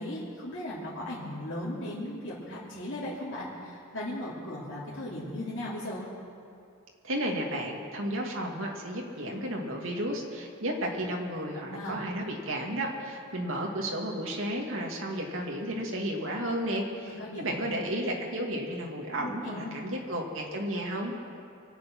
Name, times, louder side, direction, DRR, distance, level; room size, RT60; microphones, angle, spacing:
voice 1, 0.0-6.1 11.6-12.0 17.0-17.7 19.2-19.7, left 1 dB, 60° left, -9 dB, 3.0 m, -37 dB
voice 2, 7.0-21.1, right 1 dB, 65° right, 0 dB, 2.2 m, -33 dB
25.0 x 8.3 x 6.1 m, 2.4 s
head